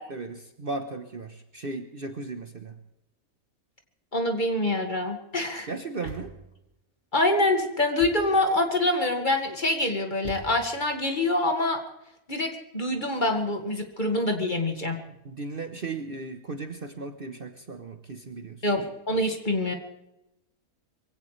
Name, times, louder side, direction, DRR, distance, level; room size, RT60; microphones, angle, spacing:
voice 1, 0.1-2.7 5.7-6.3 15.2-18.6, right 3 dB, 40° right, 7 dB, 1.1 m, -36 dB
voice 2, 4.1-5.7 7.1-11.8 12.3-15.0 18.6-19.7, left 1 dB, 30° left, 3 dB, 2.2 m, -25 dB
Thump thud, 6.0-6.6 8.0-8.5 10.2-10.9, right 2 dB, 20° right, 2.2 m, -43 dB
23.0 x 16.5 x 3.3 m, 0.89 s
omnidirectional pair, 1.5 m